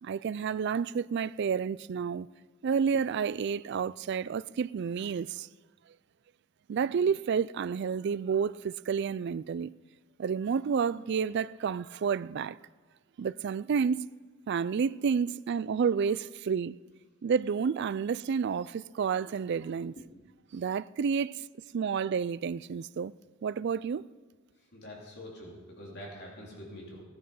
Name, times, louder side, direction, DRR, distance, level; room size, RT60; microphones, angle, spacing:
voice 1, 0.0-2.3 2.6-5.5 6.7-9.7 10.2-12.6 13.2-14.1 14.5-16.8 17.2-19.9 20.5-21.4 21.7-23.1 23.4-24.0, right 6 dB, 55° right, 0.3 m, -30 dB
voice 2, 24.7-27.0, equal, 55° left, 3.2 m, -45 dB
17.0 x 10.5 x 5.4 m
head